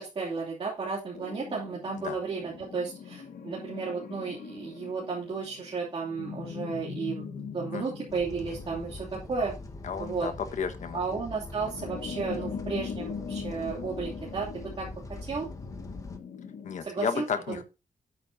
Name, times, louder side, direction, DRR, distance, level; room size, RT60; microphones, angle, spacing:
voice 1, 0.0-9.5 10.0-10.3 10.9-14.9 15.2-15.5 16.8-17.6, right 4 dB, 40° right, -4 dB, 2.8 m, -33 dB
sound 1, 1.1-16.8, left 6 dB, 80° left, 1.8 m, -41 dB
sound 2, 8.1-16.2, left 2 dB, 25° left, 1.3 m, -43 dB
voice 2, 9.8-11.0 16.6-17.6, left 6 dB, 65° left, 9 dB, 1.4 m, -32 dB
11.5 x 8.6 x 2.7 m, 0.29 s
wide cardioid pair, 165°, 14 cm